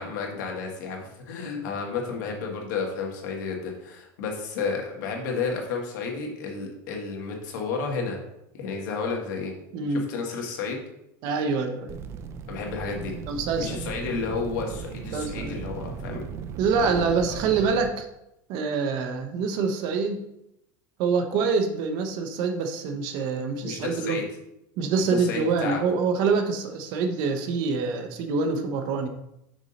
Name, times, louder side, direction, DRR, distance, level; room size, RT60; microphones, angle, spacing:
voice 1, 0.0-8.2 8.5-9.5 9.9-10.8 12.5-13.1 13.6-16.2 16.8-17.4 23.6-24.3 24.9-25.8, left 4 dB, 80° left, 1 dB, 1.8 m, -32 dB
voice 2, 9.7-10.1 11.2-12.0 13.3-13.8 15.1-15.6 16.6-18.1 18.5-20.2 21.0-24.2 24.8-29.1, right 5 dB, 45° right, 6 dB, 0.8 m, -26 dB
sound 1, 11.9-17.9, right 6 dB, 25° right, 0.3 m, -37 dB
6.1 x 5.4 x 4.0 m, 0.83 s
cardioid pair, 175°, 10 cm